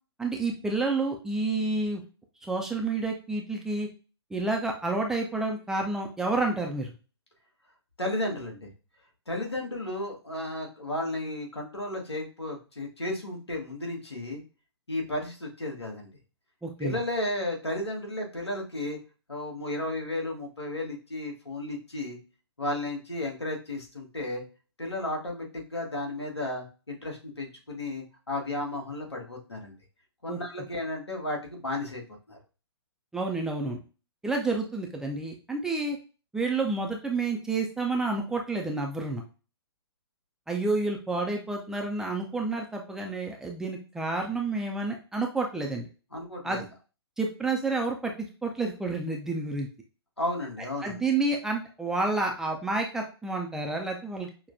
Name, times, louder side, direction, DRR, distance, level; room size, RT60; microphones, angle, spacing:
voice 1, 0.2-2.0 2.4-3.9 4.3-6.9 16.6-17.0 30.3-30.4 33.1-33.8 34.2-36.0 36.3-39.2 40.5-45.9 46.4-46.7 47.2-48.1 48.4-49.7 50.8-54.3, right 3 dB, 5° right, 0 dB, 0.4 m, -29 dB
voice 2, 8.0-8.7 9.3-14.4 14.9-16.1 16.8-19.0 19.3-22.2 22.6-24.4 24.8-29.7 30.2-32.0 32.3-32.4 46.1-46.6 50.2-51.0, left 1 dB, 80° left, 0 dB, 1.4 m, -33 dB
5.9 x 2.2 x 2.6 m, 0.33 s
figure-of-eight pair, 120°, 14 cm